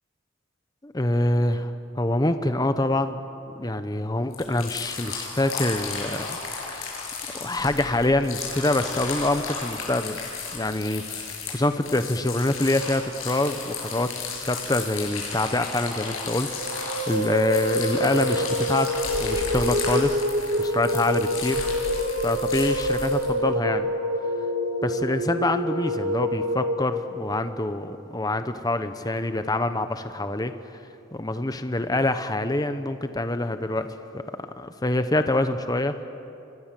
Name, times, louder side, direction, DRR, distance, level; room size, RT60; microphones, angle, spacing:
voice 1, 0.8-3.2 3.5-7.0 7.3-10.2 10.5-18.9 19.2-20.2 20.6-21.6 22.2-23.9 24.8-30.5 31.1-36.0, left 2 dB, 20° left, 9 dB, 0.9 m, -26 dB
sound 1, 4.3-23.3, left 4 dB, 85° left, 7.4 m, -34 dB
sound 2, 16.5-26.8, equal, 65° right, 2.0 m, -27 dB
29.0 x 24.5 x 7.6 m, 2.7 s
head